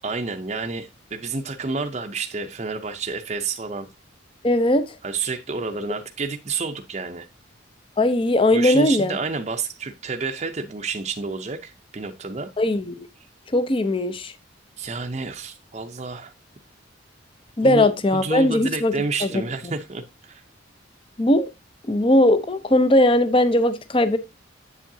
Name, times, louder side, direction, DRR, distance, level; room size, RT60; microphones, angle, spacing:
voice 1, 0.0-3.9 5.0-7.3 8.5-12.5 14.8-16.3 17.6-20.4, right 4 dB, 35° right, 0.6 m, -30 dB
voice 2, 4.4-4.8 8.0-9.2 12.6-12.9 13.5-14.3 17.6-18.9 21.2-21.5 21.9-24.2, left 1 dB, 25° left, 0.6 m, -19 dB
8.1 x 7.3 x 2.7 m
head